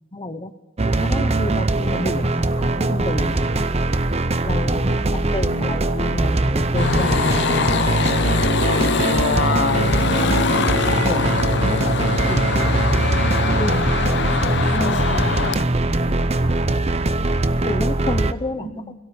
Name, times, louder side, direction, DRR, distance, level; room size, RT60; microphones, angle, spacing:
voice 1, 0.1-0.5 1.0-3.6 4.4-8.1 8.7-9.7 11.1-11.9 12.3-14.4 14.7-15.4 17.6-18.7, left 1 dB, 25° left, 9 dB, 1.0 m, -30 dB
sound 1, 0.8-18.3, right 2 dB, 30° right, 0.8 m, -21 dB
voice 2, 4.8-5.7 10.2-10.7 18.6-18.9, equal, 65° right, -1 dB, 4.7 m, -36 dB
sound 2, 6.8-15.6, left 5 dB, 60° left, 0.7 m, -23 dB
26.0 x 17.5 x 7.2 m, 1.1 s
head